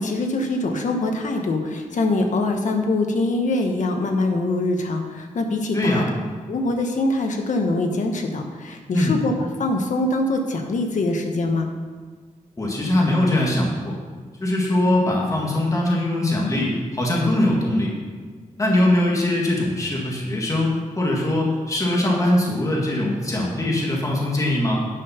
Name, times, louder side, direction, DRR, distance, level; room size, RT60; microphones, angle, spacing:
voice 1, 0.0-6.0 6.5-9.3 9.6-11.7, left 2 dB, 65° left, 4 dB, 1.2 m, -23 dB
voice 2, 5.7-6.1 8.9-9.2 12.6-14.0 14.4-17.9 18.6-24.8, left 1 dB, 25° left, -2 dB, 1.8 m, -21 dB
10.5 x 5.7 x 5.7 m, 1.5 s
wide cardioid pair, 130°, 13 cm